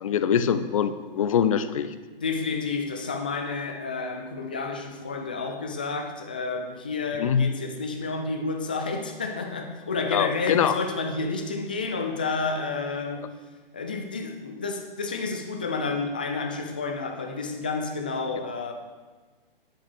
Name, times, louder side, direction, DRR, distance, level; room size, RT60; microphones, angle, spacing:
voice 1, 0.0-1.9 7.2-7.5 10.1-10.8, left 8 dB, 35° left, 13 dB, 0.7 m, -23 dB
voice 2, 2.2-13.3 13.7-18.7, left 4 dB, 10° left, 5 dB, 0.3 m, -30 dB
10.5 x 8.4 x 6.5 m, 1.4 s
figure-of-eight pair, 130°, 29 cm